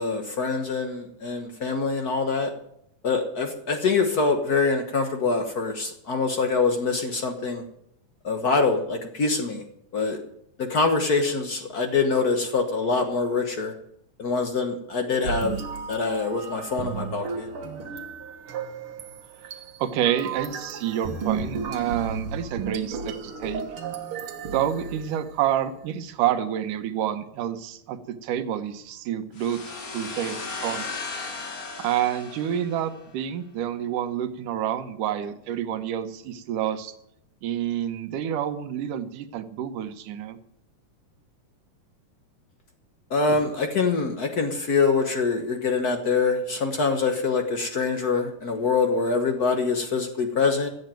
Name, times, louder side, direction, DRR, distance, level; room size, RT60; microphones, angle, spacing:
voice 1, 0.0-2.5 3.0-7.6 8.2-9.6 9.9-10.2 10.6-13.7 14.2-15.6 15.9-17.5 43.1-50.7, left 4 dB, 85° left, 4 dB, 0.8 m, -24 dB
sound 1, 15.2-25.5, right 5 dB, 55° right, 1.8 m, -34 dB
voice 2, 19.8-23.6 24.5-29.6 29.9-30.4 30.6-31.0 31.8-36.9 37.4-40.4, right 10 dB, 75° right, 10 dB, 2.6 m, -28 dB
sound 2, 29.4-33.1, left 4 dB, 35° left, 1.7 m, -36 dB
15.5 x 8.1 x 9.1 m, 0.75 s
omnidirectional pair, 3.8 m